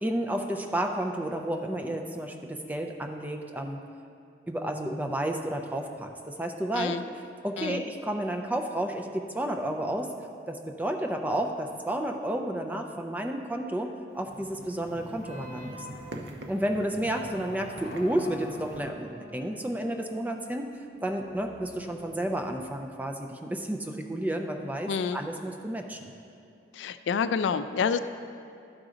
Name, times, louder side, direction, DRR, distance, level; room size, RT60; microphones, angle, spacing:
voice 1, 0.0-3.8 4.5-10.1 10.5-16.0 16.5-20.7 21.0-26.1, right 1 dB, 10° right, 3 dB, 0.4 m, -31 dB
sound 1, 14.1-18.8, right 1 dB, 70° right, 0.6 m, -44 dB
sound 2, 15.2-23.0, left 2 dB, 65° left, 0.8 m, -47 dB
voice 2, 24.9-25.2 26.7-28.0, left 6 dB, 90° left, 12 dB, 0.3 m, -28 dB
11.5 x 3.9 x 4.9 m, 2.5 s
head